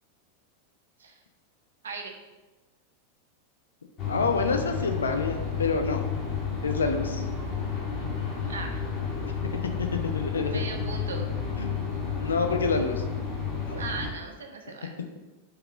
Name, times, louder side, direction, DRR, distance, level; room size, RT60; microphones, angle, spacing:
sound 1, 4.0-14.1, left 6 dB, 30° left, 1.6 m, -31 dB
voice 1, 4.1-6.0 6.6-7.2 9.2-9.3 9.6-10.6 11.6-11.9 12.2-13.0 13.7-13.8, left 4 dB, 70° left, 5 dB, 0.8 m, -28 dB
voice 2, 8.5-8.8 10.5-11.3 13.7-15.0, right 4 dB, 70° right, 3 dB, 1.1 m, -38 dB
5.5 x 4.7 x 6.2 m, 1.1 s
figure-of-eight pair, 90°, 0 cm